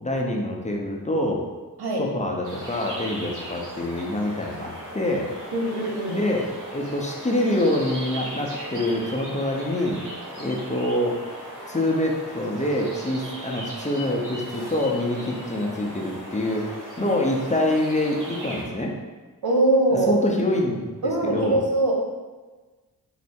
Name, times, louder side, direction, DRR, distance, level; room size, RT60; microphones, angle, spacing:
voice 1, 0.0-1.4 2.0-5.3 6.1-10.0 10.4-11.2 11.7-18.9 19.9-21.6, left 1 dB, 20° left, -1 dB, 0.7 m, -26 dB
sound 1, 2.4-18.6, right 1 dB, 50° right, 1.4 m, -38 dB
voice 2, 5.5-6.2 19.4-20.2 21.0-21.9, right 2 dB, 75° right, -1 dB, 1.0 m, -22 dB
4.6 x 2.1 x 4.3 m, 1.3 s
cardioid pair, 50°, 39 cm